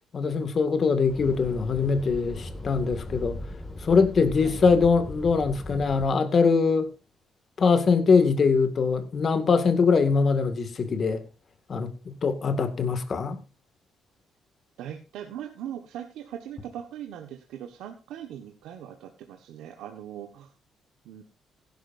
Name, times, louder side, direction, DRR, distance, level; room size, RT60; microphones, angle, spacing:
voice 1, 0.1-3.4 3.8-6.9 7.6-11.2 11.7-13.4, left 5 dB, 45° left, 2.0 m, -22 dB
sound 1, 1.1-6.1, left 1 dB, 20° left, 2.1 m, -38 dB
voice 2, 4.4-4.7 14.8-20.5 21.0-21.2, right 10 dB, 90° right, 1.4 m, -40 dB
16.0 x 11.5 x 2.6 m
cardioid pair, 90°, 0 cm